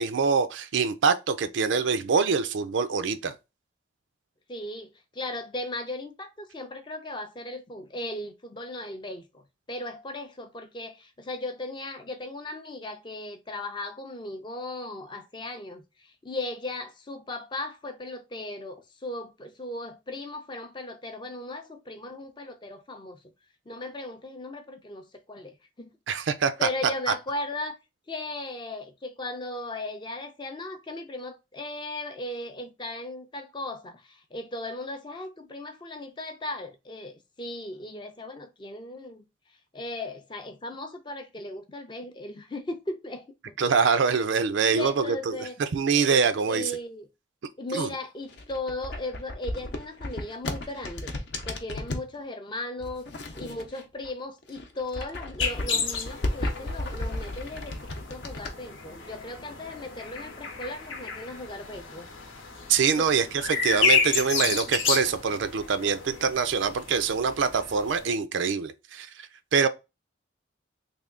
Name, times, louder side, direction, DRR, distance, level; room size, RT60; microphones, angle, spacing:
voice 1, 0.0-3.3 26.1-26.7 43.6-46.7 47.7-47.9 62.7-69.1 69.5-69.7, right 5 dB, 75° right, 0.4 m, -24 dB
voice 2, 4.5-23.2 23.7-25.9 26.6-27.7 28.1-39.3 39.7-43.6 44.7-45.6 46.5-47.1 47.6-51.1 51.4-53.1 53.3-62.1 63.0-63.1, left 2 dB, 25° left, 0.4 m, -37 dB
sound 1, 48.2-52.1 52.8-54.1 54.4-58.5, left 1 dB, 60° left, 0.7 m, -34 dB
sound 2, 55.4-68.1, left 5 dB, 90° left, 0.9 m, -31 dB
3.4 x 2.2 x 3.6 m
head